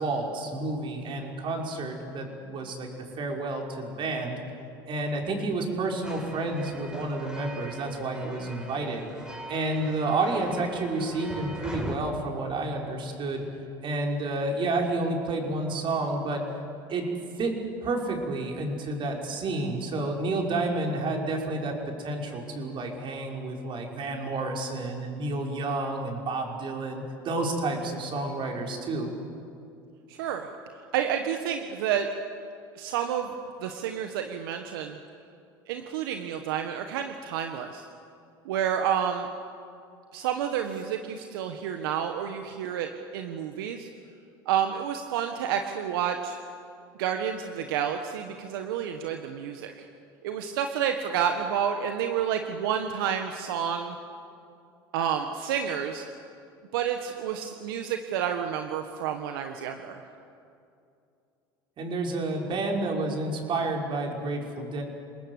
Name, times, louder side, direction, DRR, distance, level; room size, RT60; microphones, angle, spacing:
voice 1, 0.0-2.9 3.2-4.4 4.9-9.0 9.5-13.5 13.8-16.4 16.9-17.1 17.4-29.1 61.8-64.8, right 2 dB, 45° right, 1 dB, 5.7 m, -30 dB
sound 1, 6.0-12.0, equal, 5° right, 5.6 m, -41 dB
voice 2, 30.1-30.5 30.9-32.1 32.7-33.3 33.6-35.0 35.7-37.9 38.4-39.3 40.1-43.9 44.4-46.4 47.0-49.9 50.2-54.0 54.9-56.1 56.7-60.0, right 8 dB, 80° right, 5 dB, 1.5 m, -30 dB
28.0 x 20.0 x 8.3 m, 2.5 s
hypercardioid pair, 85°, 12 cm